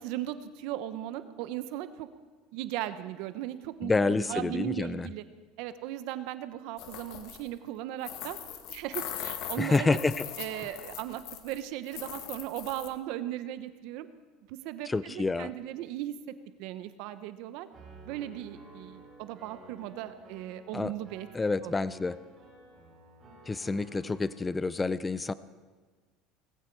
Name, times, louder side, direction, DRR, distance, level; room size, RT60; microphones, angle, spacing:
voice 1, 0.0-2.1 2.5-5.2 5.6-8.4 8.7-10.0 10.4-14.1 14.5-16.1 16.6-17.7 18.1-21.3 21.6-21.7, right 13 dB, 70° right, 12 dB, 0.9 m, -37 dB
voice 2, 3.8-5.1 9.6-10.3 14.9-15.5 20.7-20.9 21.3-22.2 23.5-25.3, left 3 dB, 15° left, 16 dB, 0.4 m, -28 dB
sound 1, 6.8-7.5 8.0-11.6 11.9-12.9, left 11 dB, 60° left, 1.6 m, -40 dB
Piano, 17.7-24.6, right 2 dB, 20° right, 6.0 m, -53 dB
19.5 x 15.5 x 4.6 m, 1.4 s
cardioid pair, 140°, 0 cm